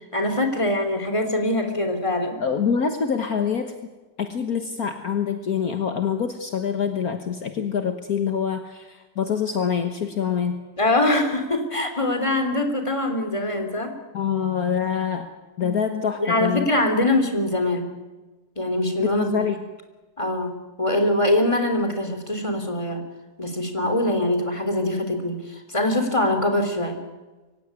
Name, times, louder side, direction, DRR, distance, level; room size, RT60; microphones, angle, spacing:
voice 1, 0.1-2.4 10.8-13.9 16.2-17.9 18.6-19.4 20.2-23.0 23.4-25.4 25.7-27.0, left 1 dB, 15° left, 6 dB, 3.3 m, -23 dB
voice 2, 2.4-3.8 4.2-10.6 14.1-15.3 15.6-16.7 19.0-19.6, left 7 dB, 60° left, 7 dB, 1.8 m, -25 dB
24.0 x 16.5 x 9.7 m, 1.2 s
omnidirectional pair, 1.8 m